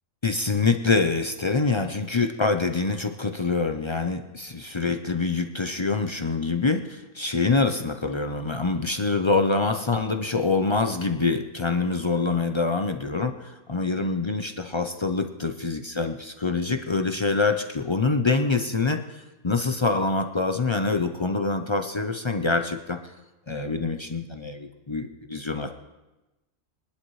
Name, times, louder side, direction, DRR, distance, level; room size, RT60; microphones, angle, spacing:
voice 1, 0.2-23.0 23.5-25.7, left 3 dB, 45° left, 6 dB, 0.3 m, -25 dB
22.5 x 11.5 x 3.2 m, 1.1 s
omnidirectional pair, 1.4 m